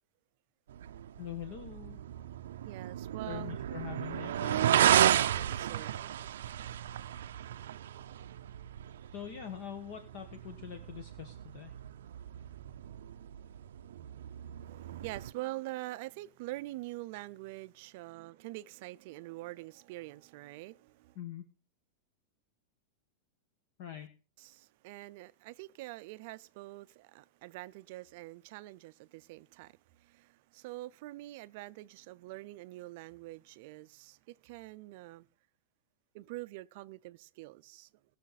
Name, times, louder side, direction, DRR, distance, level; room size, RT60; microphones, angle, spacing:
sound 1, 0.7-15.3, right 11 dB, 90° right, 0.6 m, -33 dB
voice 1, 1.2-2.0 3.2-4.7 9.1-11.7 21.1-21.4 23.8-24.1, left 10 dB, 45° left, 1.3 m, -43 dB
voice 2, 2.6-3.6 5.3-6.2 14.6-21.1 24.4-35.3 36.1-37.9, right 19 dB, 45° right, 0.5 m, -45 dB
19.5 x 6.5 x 4.1 m
supercardioid pair, 175°, 0 cm